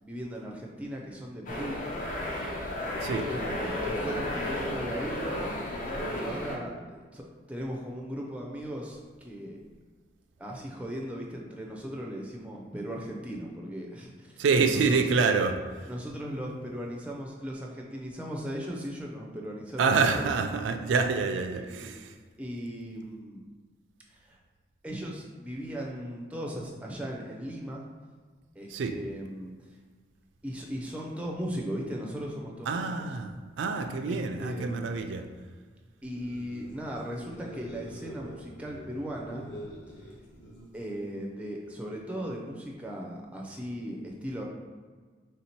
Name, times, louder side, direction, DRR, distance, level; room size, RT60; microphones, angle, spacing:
voice 1, 0.0-1.8 3.3-5.4 6.0-9.6 10.4-15.0 15.9-20.2 21.5-21.9 22.4-23.4 24.1-24.4 24.8-27.9 28.5-29.5 30.4-33.1 34.1-34.8 36.0-39.5 40.7-44.4, equal, 5° right, -1 dB, 0.4 m, -38 dB
sound 1, 1.5-6.6, left 1 dB, 45° left, 0.7 m, -33 dB
voice 2, 14.4-15.6 19.8-22.1 28.7-28.9 32.7-35.3, right 4 dB, 85° right, 6 dB, 0.3 m, -27 dB
sound 2, 36.0-41.1, equal, 80° left, 0.9 m, -46 dB
3.4 x 2.8 x 4.3 m, 1.5 s
head